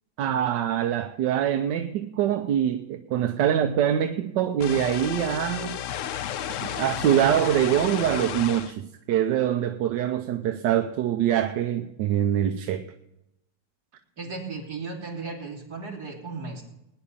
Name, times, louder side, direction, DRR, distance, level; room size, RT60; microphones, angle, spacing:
voice 1, 0.2-5.7 6.6-12.8, right 10 dB, 85° right, 1.4 m, -24 dB
sound 1, 4.6-8.7, left 10 dB, 65° left, 0.8 m, -32 dB
voice 2, 14.2-16.6, right 4 dB, 60° right, 3.6 m, -35 dB
19.5 x 10.0 x 5.5 m
omnidirectional pair, 1.9 m